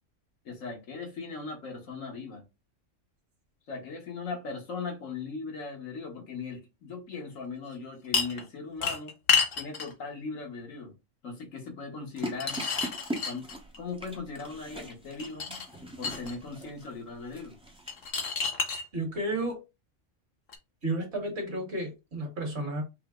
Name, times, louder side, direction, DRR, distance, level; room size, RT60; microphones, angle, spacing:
voice 1, 0.4-2.4 3.7-9.1 9.5-10.9 11.2-12.7 13.2-13.5 13.8-15.6 16.0-17.5, left 4 dB, 90° left, 1.7 m, -39 dB
sound 1, 8.1-8.4 8.8-9.9 12.2-13.8 15.2-16.4 17.9-18.8 20.5-20.6, left 5 dB, 55° left, 1.0 m, -29 dB
sound 2, 12.2-18.1, right 1 dB, 5° right, 0.7 m, -41 dB
voice 2, 18.9-19.6 20.8-22.8, right 1 dB, 55° right, 1.8 m, -32 dB
5.5 x 2.0 x 3.6 m
omnidirectional pair, 1.3 m